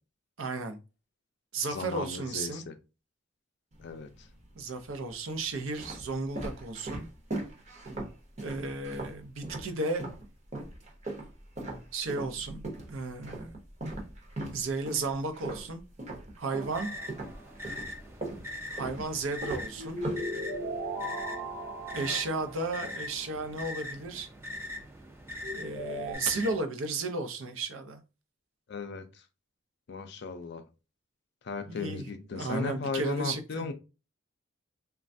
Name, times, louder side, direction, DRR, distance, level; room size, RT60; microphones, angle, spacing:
voice 1, 0.4-0.8 1.5-2.7 4.6-7.1 8.4-10.1 11.9-13.6 14.5-15.8 16.4-16.9 18.7-20.0 21.9-24.3 25.5-28.0 31.7-33.7, right 3 dB, 80° right, 0.6 m, -34 dB
voice 2, 1.7-2.7 3.8-4.1 21.9-22.2 28.7-29.0 29.9-30.6 31.4-33.7, left 4 dB, 55° left, 0.4 m, -36 dB
sound 1, 3.7-4.4 5.1-10.2 10.5-16.8 17.1-20.8, right 2 dB, 35° right, 0.7 m, -39 dB
sound 2, 16.4-17.5 19.8-23.1 25.4-26.2, right 1 dB, 60° right, 0.9 m, -38 dB
sound 3, 16.6-26.6, left 1 dB, 10° right, 0.4 m, -42 dB
3.2 x 2.3 x 2.6 m
head